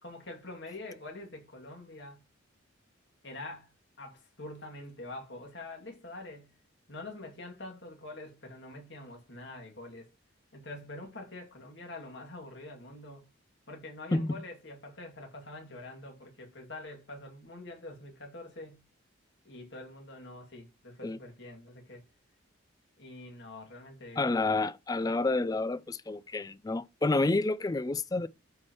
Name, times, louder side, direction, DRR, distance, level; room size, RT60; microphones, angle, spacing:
voice 1, 0.0-2.2 3.2-6.5 6.9-10.1 10.5-13.3 13.7-18.8 19.4-22.0 23.0-24.2, left 2 dB, 60° left, 2.4 m, -45 dB
voice 2, 14.1-14.4 21.0-21.2 24.2-28.3, left 2 dB, 20° left, 0.3 m, -29 dB
13.0 x 4.6 x 3.0 m
head